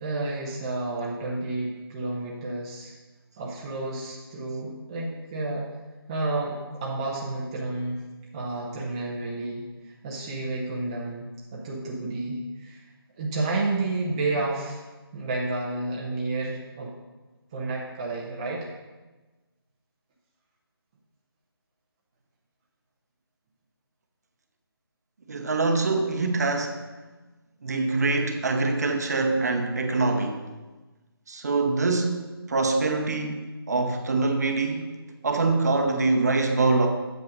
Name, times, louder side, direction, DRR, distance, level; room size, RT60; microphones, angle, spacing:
voice 1, 0.0-2.9 3.4-5.6 6.1-8.0 8.3-9.7 10.0-12.8 13.2-14.8 15.1-16.9 17.5-18.7, right 2 dB, 15° right, -5 dB, 0.7 m, -30 dB
voice 2, 25.3-26.8 27.6-30.5 31.3-35.0 35.2-36.9, right 3 dB, 40° right, 5 dB, 0.9 m, -24 dB
8.5 x 6.7 x 5.2 m, 1.2 s
figure-of-eight pair, 165°, 13 cm